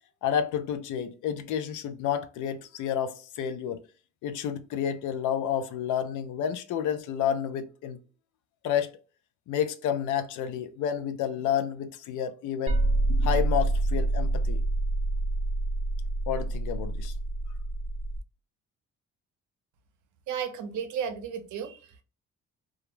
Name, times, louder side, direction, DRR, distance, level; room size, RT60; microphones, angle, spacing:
voice 1, 0.2-3.8 4.2-8.0 8.6-8.9 9.5-12.8 13.1-14.6 16.3-17.1, left 9 dB, 80° left, 0.4 m, -30 dB
sound 1, 12.7-18.2, right 2 dB, 20° right, 0.5 m, -27 dB
voice 2, 20.3-22.0, right 7 dB, 70° right, 0.6 m, -34 dB
2.3 x 2.0 x 3.0 m
cardioid pair, 90°, 30 cm